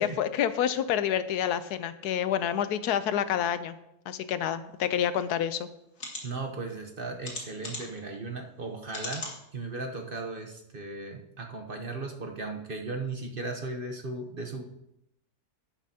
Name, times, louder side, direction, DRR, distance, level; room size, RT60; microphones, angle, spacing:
voice 1, 0.0-3.7 4.1-5.7, left 9 dB, 85° left, 12 dB, 1.2 m, -28 dB
sound 1, 5.2-5.3 5.9-6.2 7.2-8.0 8.9-9.4 9.9-10.0 10.4-10.5, left 2 dB, 55° left, 2.3 m, -38 dB
voice 2, 6.2-9.3 9.5-14.6, right 3 dB, 40° right, 3 dB, 1.0 m, -36 dB
11.0 x 11.0 x 2.8 m, 0.85 s
omnidirectional pair, 1.6 m